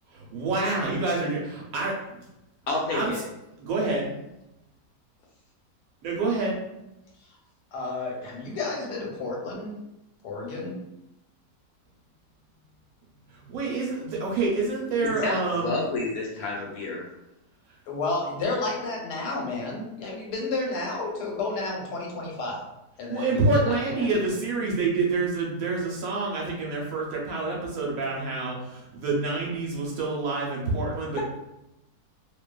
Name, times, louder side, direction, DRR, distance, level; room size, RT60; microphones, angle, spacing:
voice 1, 0.1-2.2 2.9-3.1 3.6-4.1 6.0-6.6 13.5-15.7 23.1-31.2, right 3 dB, 70° right, -3 dB, 0.9 m, -27 dB
voice 2, 2.7-3.2 15.2-17.1 31.1-31.2, left 2 dB, 70° left, -2 dB, 1.0 m, -29 dB
voice 3, 7.7-9.7 10.2-10.8 17.9-22.6 23.0-24.2, left 3 dB, 90° left, -2 dB, 1.3 m, -31 dB
2.6 x 2.3 x 2.2 m, 0.90 s
omnidirectional pair, 1.7 m